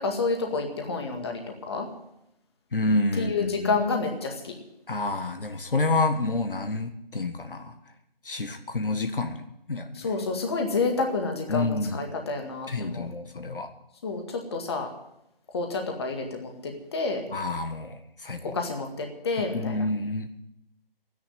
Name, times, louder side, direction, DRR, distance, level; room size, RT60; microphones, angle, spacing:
voice 1, 0.0-1.4 1.7-1.9 3.1-4.5 9.9-13.1 14.0-14.9 15.5-17.2 18.5-19.9, left 3 dB, 25° left, 3 dB, 2.0 m, -29 dB
voice 2, 2.7-3.7 4.9-7.7 8.2-9.4 9.7-10.1 11.5-12.0 12.7-13.7 17.3-18.6 19.5-20.3, left 2 dB, 65° left, 7 dB, 1.6 m, -28 dB
13.0 x 10.0 x 9.3 m, 0.83 s
figure-of-eight pair, 160°, 29 cm